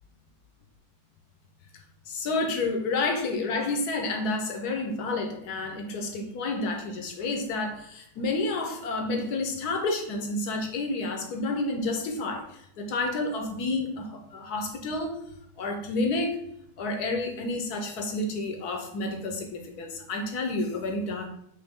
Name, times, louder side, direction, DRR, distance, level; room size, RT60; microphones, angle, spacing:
voice 1, 2.1-15.2 15.6-16.4 16.8-21.3, left 2 dB, 60° left, 4 dB, 1.3 m, -30 dB
7.8 x 3.2 x 3.7 m, 0.75 s
omnidirectional pair, 2.2 m